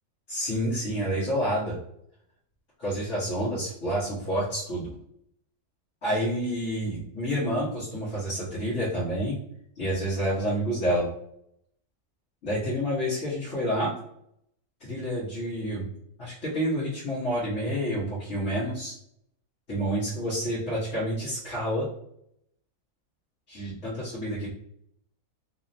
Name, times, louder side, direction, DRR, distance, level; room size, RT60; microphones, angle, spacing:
voice 1, 0.3-1.8 2.8-4.9 6.0-9.4 9.8-11.1 12.4-13.9 14.8-15.9 16.2-18.9 19.7-21.9 23.5-24.5, equal, 60° left, -10 dB, 1.7 m, -28 dB
4.2 x 2.7 x 2.7 m, 0.73 s
omnidirectional pair, 1.5 m